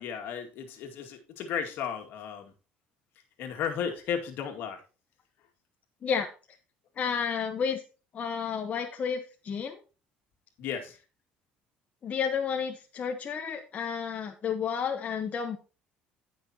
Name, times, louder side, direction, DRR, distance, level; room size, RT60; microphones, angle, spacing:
voice 1, 0.0-2.5 3.4-4.8 10.6-10.9, left 7 dB, 65° left, 4 dB, 2.1 m, -34 dB
voice 2, 7.0-7.8 8.1-9.8 12.0-15.6, left 6 dB, 40° left, 4 dB, 1.2 m, -31 dB
16.0 x 6.1 x 2.9 m, 0.33 s
cardioid pair, 105°, 4 cm